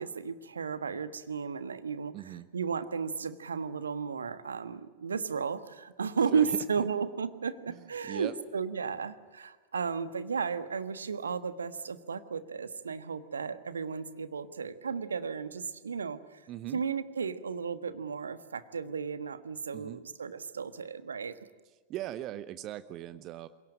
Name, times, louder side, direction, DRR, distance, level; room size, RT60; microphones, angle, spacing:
voice 1, 0.0-16.4 16.7-21.3, right 6 dB, 70° right, 13 dB, 1.4 m, -34 dB
voice 2, 2.1-2.5 6.3-6.6 7.7-8.3 16.5-16.8 19.7-20.0 21.9-23.5, right 14 dB, 35° right, 14 dB, 0.9 m, -39 dB
27.5 x 18.0 x 8.8 m, 1.4 s
figure-of-eight pair, 90°, 0 cm